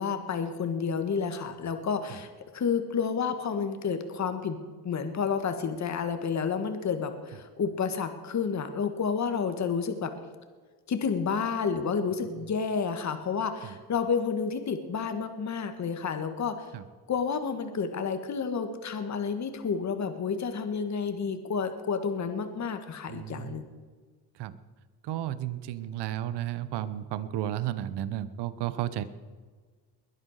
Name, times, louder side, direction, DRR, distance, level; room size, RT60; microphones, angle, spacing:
voice 1, 0.0-10.1 10.9-16.7 17.1-23.7, left 6 dB, 40° left, 8 dB, 1.8 m, -30 dB
voice 2, 23.1-23.6 24.4-24.6 25.0-29.0, right 12 dB, 75° right, 14 dB, 1.1 m, -33 dB
21.5 x 10.0 x 6.7 m, 1.5 s
cardioid pair, 95°, 41 cm